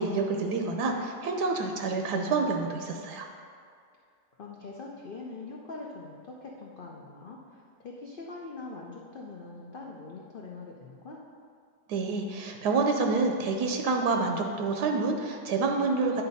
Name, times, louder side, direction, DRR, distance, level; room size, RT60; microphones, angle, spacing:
voice 1, 0.0-3.3 11.9-16.2, right 4 dB, 75° right, 3 dB, 1.1 m, -28 dB
voice 2, 4.4-11.2, left 3 dB, 75° left, -2 dB, 0.4 m, -43 dB
9.7 x 4.1 x 4.1 m, 2.2 s
omnidirectional pair, 1.8 m